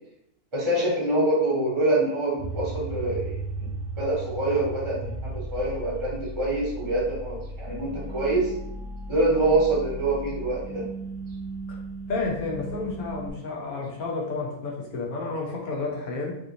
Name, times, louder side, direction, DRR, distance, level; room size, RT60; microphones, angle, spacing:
voice 1, 0.5-3.3 4.0-8.5 9.1-10.8, right 2 dB, 25° right, -4 dB, 0.9 m, -25 dB
sound 1, 2.4-13.3, right 2 dB, 65° right, 0.8 m, -36 dB
voice 2, 12.1-16.4, left 3 dB, 70° left, -1 dB, 1.3 m, -31 dB
3.5 x 2.8 x 2.6 m, 0.78 s
omnidirectional pair, 1.6 m